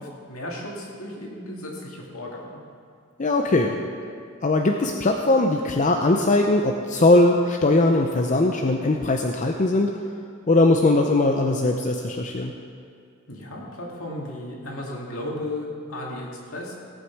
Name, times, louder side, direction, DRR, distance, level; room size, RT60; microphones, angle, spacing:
voice 1, 0.0-2.6 13.3-16.8, left 1 dB, 70° left, -2 dB, 2.4 m, -35 dB
voice 2, 3.2-3.7 4.4-9.9 10.5-12.5, left 2 dB, 35° left, 2 dB, 0.6 m, -20 dB
17.5 x 8.2 x 4.8 m, 2.3 s
head